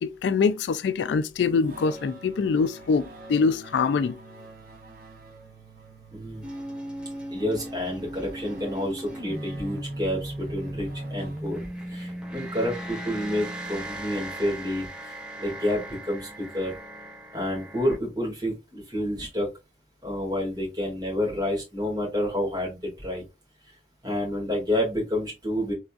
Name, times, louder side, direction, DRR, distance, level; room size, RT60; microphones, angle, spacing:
voice 1, 0.0-4.2, left 5 dB, 70° left, 0.3 m, -24 dB
sound 1, 1.6-11.9, right 3 dB, 50° right, 0.7 m, -47 dB
voice 2, 6.1-6.4 7.3-11.6 11.9-14.9 15.4-16.7 17.3-19.5 20.0-23.2 24.0-25.7, left 1 dB, 20° right, 2.1 m, -29 dB
sound 2, 6.4-18.0, right 1 dB, 5° right, 0.7 m, -37 dB
3.9 x 3.4 x 2.4 m
head